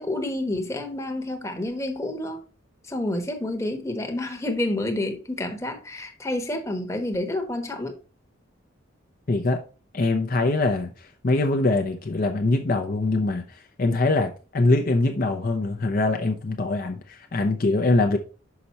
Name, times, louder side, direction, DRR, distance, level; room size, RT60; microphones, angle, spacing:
voice 1, 0.0-2.4 2.8-7.9, left 1 dB, 15° left, 1.0 m, -29 dB
voice 2, 9.3-9.6 9.9-18.2, left 2 dB, 45° left, 0.6 m, -23 dB
5.9 x 5.3 x 4.1 m
head